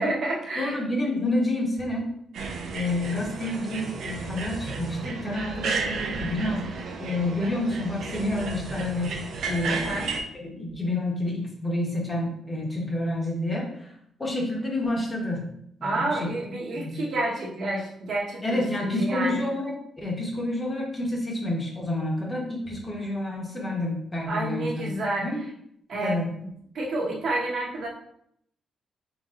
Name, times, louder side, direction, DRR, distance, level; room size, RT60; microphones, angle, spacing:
voice 1, 0.0-0.8 9.6-10.1 15.8-19.4 24.3-25.3 25.9-26.2 26.7-27.9, right 2 dB, 55° right, -2 dB, 1.2 m, -29 dB
voice 2, 0.6-2.1 2.7-13.9 14.2-15.5 15.8-16.3 16.7-17.0 18.4-24.9 25.2-25.4 26.0-26.3, left 1 dB, 20° left, -2 dB, 1.2 m, -29 dB
sound 1, 2.3-10.2, right 4 dB, 75° right, 0.6 m, -33 dB
3.7 x 3.3 x 3.7 m, 0.71 s
cardioid pair, 125°, 0 cm